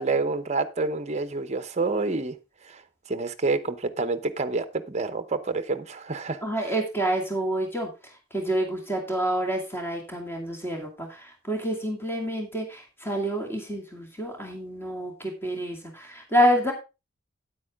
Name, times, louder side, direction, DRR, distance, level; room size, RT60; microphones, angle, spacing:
voice 1, 0.0-2.4 2.6-2.8 3.1-6.4, right 3 dB, 35° right, 0.9 m, -28 dB
voice 2, 6.4-16.7, equal, 10° left, 2.4 m, -28 dB
9.6 x 8.5 x 3.6 m
head